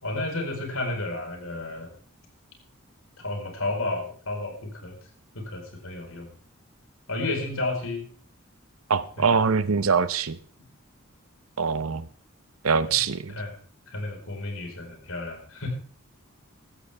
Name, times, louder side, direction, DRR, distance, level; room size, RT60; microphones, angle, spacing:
voice 1, 0.0-1.9 3.2-5.0 5.3-6.3 7.1-8.0 9.2-9.5 13.3-13.5 13.9-15.7, left 2 dB, 80° left, 2 dB, 4.5 m, -32 dB
voice 2, 8.9-10.4 11.6-12.0 12.6-13.3, right 5 dB, 90° right, 15 dB, 0.9 m, -23 dB
14.5 x 14.5 x 3.4 m, 0.43 s
head